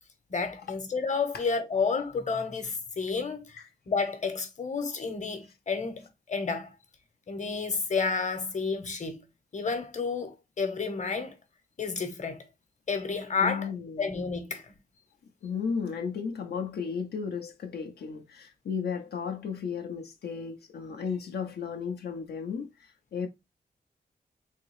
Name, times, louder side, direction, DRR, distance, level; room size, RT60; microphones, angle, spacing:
voice 1, 0.3-3.6 3.9-6.7 7.3-9.2 9.5-11.4 11.8-12.5 12.9-13.7 14.0-14.7, left 5 dB, 50° left, 1.0 m, -30 dB
voice 2, 13.4-14.1 15.4-23.3, left 6 dB, 85° left, 0.6 m, -34 dB
3.6 x 2.8 x 3.1 m
cardioid pair, 75°, 16 cm